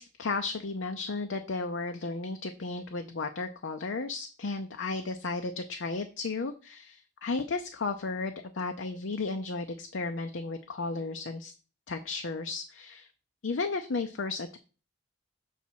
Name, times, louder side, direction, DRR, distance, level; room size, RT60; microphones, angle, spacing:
voice 1, 0.0-11.5 11.9-13.1 13.4-14.6, left 3 dB, 80° left, 6 dB, 0.6 m, -34 dB
7.1 x 4.1 x 4.5 m, 0.34 s
head